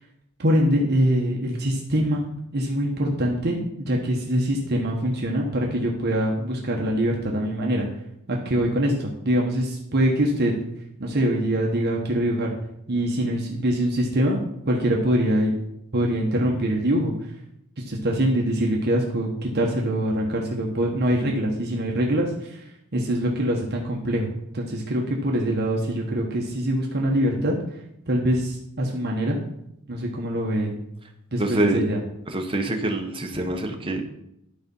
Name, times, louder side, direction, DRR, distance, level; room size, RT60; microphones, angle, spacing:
voice 1, 0.4-7.9 8.3-10.5 11.0-12.5 12.9-15.5 15.9-17.1 17.8-27.5 28.1-29.4 29.9-30.8 31.3-32.0, equal, 45° right, -1 dB, 1.2 m, -24 dB
voice 2, 31.4-31.8 32.3-34.0, right 2 dB, 25° right, 3 dB, 1.0 m, -25 dB
12.0 x 4.1 x 5.4 m, 0.79 s
head